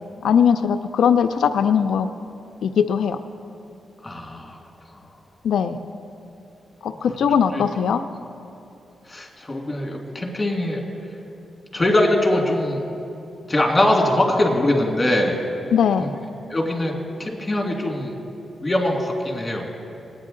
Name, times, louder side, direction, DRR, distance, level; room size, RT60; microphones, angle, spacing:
voice 1, 0.2-2.1 2.6-3.2 5.4-5.8 6.8-8.0 15.7-16.2, left 7 dB, 85° left, 8 dB, 0.4 m, -19 dB
voice 2, 4.0-4.6 4.9-5.0 7.0-7.1 7.5-7.6 9.1-10.8 11.7-12.8 13.5-15.4 16.0-16.1 16.5-16.9 17.2-18.2 18.6-19.7, left 1 dB, 20° left, 0 dB, 1.9 m, -22 dB
20.0 x 8.8 x 3.8 m, 2.8 s
wide cardioid pair, 115°, 0 cm